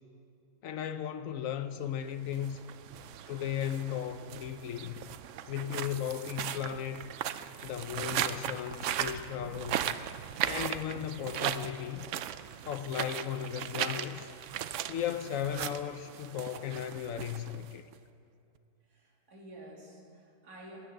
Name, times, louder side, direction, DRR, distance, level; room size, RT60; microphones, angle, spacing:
voice 1, 0.6-2.6 3.3-5.0 5.5-7.1 7.6-10.0 10.4-12.1 12.7-14.3 14.9-17.9, left 9 dB, 70° left, 0.9 m, -36 dB
sound 1, 2.2-17.9, right 10 dB, 65° right, 0.8 m, -37 dB
voice 2, 2.9-3.6 4.6-4.7 18.8-20.9, right 1 dB, 85° right, 3.0 m, -52 dB
20.0 x 9.1 x 7.6 m
omnidirectional pair, 1.6 m